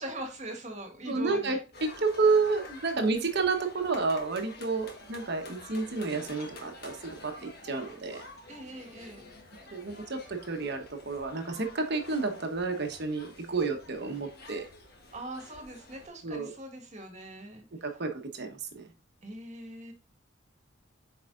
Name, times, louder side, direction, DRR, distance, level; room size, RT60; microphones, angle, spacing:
voice 1, 0.0-1.6 2.8-3.0 8.5-9.2 15.1-17.6 19.2-19.9, right 1 dB, 35° right, 3 dB, 1.6 m, -41 dB
voice 2, 1.1-8.2 9.7-14.6 16.2-16.5 17.8-18.9, right 4 dB, 55° right, 5 dB, 1.1 m, -30 dB
sound 1, 1.7-16.1, left 2 dB, 50° left, 1.3 m, -49 dB
7.9 x 4.8 x 2.5 m, 0.33 s
head